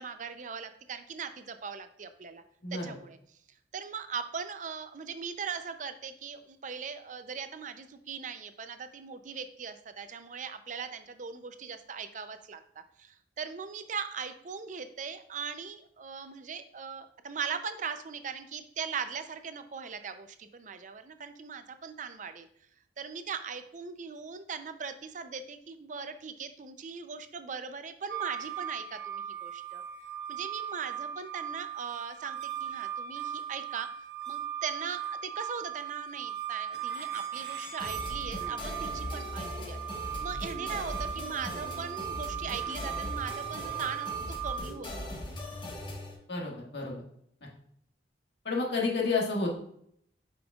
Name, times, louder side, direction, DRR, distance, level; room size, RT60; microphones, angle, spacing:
voice 1, 0.0-2.4 2.7-3.2 3.7-12.6 13.0-22.5 23.0-29.8 30.3-33.9 34.3-45.1, right 6 dB, 45° right, 10 dB, 0.5 m, -40 dB
sound 1, 28.1-44.6, right 9 dB, 60° right, 1.2 m, -38 dB
sound 2, 37.8-46.1, left 1 dB, 25° left, 1.3 m, -39 dB
voice 2, 46.3-47.0 48.5-49.6, left 3 dB, 70° left, -2 dB, 1.7 m, -30 dB
8.7 x 5.3 x 2.4 m, 0.68 s
head